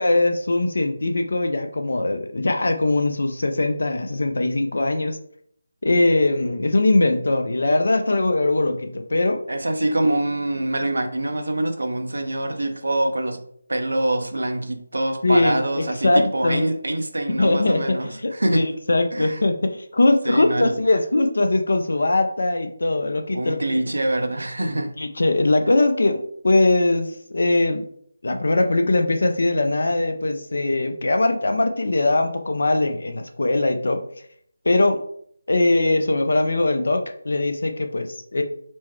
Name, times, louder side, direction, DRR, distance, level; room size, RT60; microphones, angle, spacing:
voice 1, 0.0-5.2 5.8-9.4 15.2-16.6 17.4-23.6 25.0-26.2 26.4-27.8 28.2-34.0 34.6-35.0 35.5-38.4, left 2 dB, 70° left, 6 dB, 0.6 m, -21 dB
voice 2, 9.5-18.7 19.1-19.4 20.2-20.7 23.3-25.0, right 1 dB, 90° right, 6 dB, 0.7 m, -25 dB
4.4 x 2.1 x 4.5 m, 0.65 s
figure-of-eight pair, 165°, 0 cm